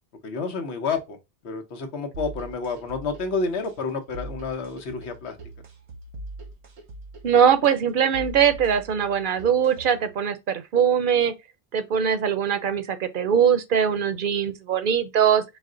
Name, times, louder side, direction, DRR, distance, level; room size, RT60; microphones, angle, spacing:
voice 1, 0.2-1.2 1.4-5.4, left 4 dB, 85° left, 1.1 m, -29 dB
sound 1, 2.1-10.1, right 2 dB, 90° right, 1.2 m, -41 dB
voice 2, 7.2-11.3 11.7-15.4, right 8 dB, 60° right, 0.7 m, -21 dB
5.1 x 2.1 x 3.7 m
omnidirectional pair, 1.1 m